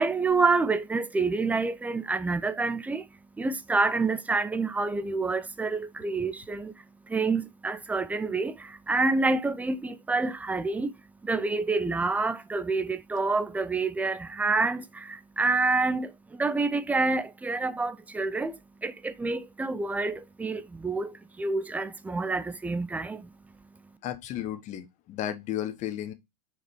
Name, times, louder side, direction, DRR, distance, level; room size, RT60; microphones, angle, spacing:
voice 1, 0.0-24.0, right 3 dB, 5° right, 0.5 m, -28 dB
voice 2, 24.0-26.1, left 11 dB, 35° left, 1.0 m, -33 dB
5.0 x 4.8 x 4.5 m
hypercardioid pair, 120°, 21 cm